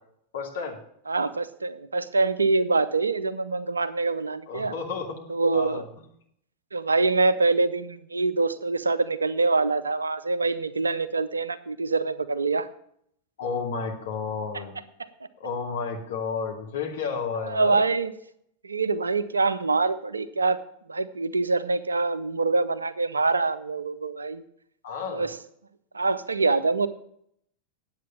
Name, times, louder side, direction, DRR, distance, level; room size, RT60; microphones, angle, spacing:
voice 1, 0.3-0.8 4.5-5.3 5.5-5.8 13.4-14.7 15.4-17.8 24.8-25.3, left 5 dB, 60° left, 1 dB, 2.5 m, -31 dB
voice 2, 1.1-4.7 5.3-5.8 6.7-12.7 17.4-18.1 18.6-20.6 20.9-24.4 25.1-25.4 25.9-26.9, right 3 dB, 75° right, 14 dB, 0.6 m, -25 dB
9.4 x 8.1 x 7.3 m, 0.70 s
figure-of-eight pair, 90°, 0 cm